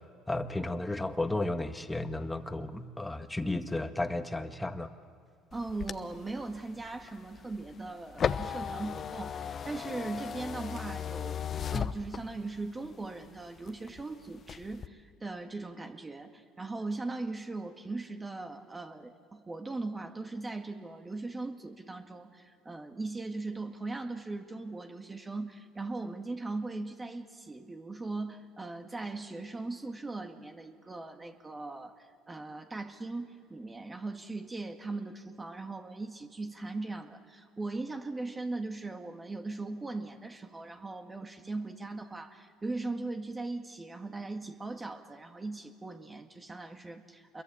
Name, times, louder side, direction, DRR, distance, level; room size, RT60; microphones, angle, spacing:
voice 1, 0.3-4.9, left 2 dB, 10° left, 8 dB, 1.7 m, -33 dB
sound 1, 5.5-12.6 13.0-14.0 14.4-14.9, left 7 dB, 45° left, 1.0 m, -36 dB
voice 2, 5.5-47.4, right 3 dB, 20° right, 5 dB, 1.9 m, -39 dB
27.0 x 22.5 x 8.8 m, 2.3 s
hypercardioid pair, 75°, 0 cm